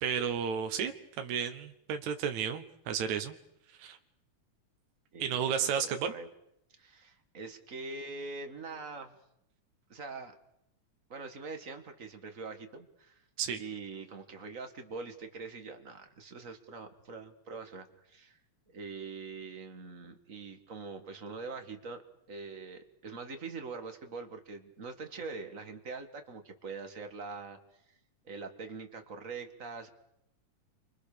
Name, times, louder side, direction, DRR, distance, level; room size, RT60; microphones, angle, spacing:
voice 1, 0.0-3.3 3.8-4.0 5.2-6.1 13.4-13.6, right 7 dB, 70° right, 6 dB, 2.4 m, -32 dB
voice 2, 5.1-6.3 6.8-9.2 9.9-10.3 11.1-13.2 13.6-18.4 18.7-22.0 22.3-27.6 28.2-29.9, right 4 dB, 30° right, 6 dB, 1.8 m, -43 dB
30.0 x 24.0 x 6.8 m, 0.80 s
omnidirectional pair, 3.5 m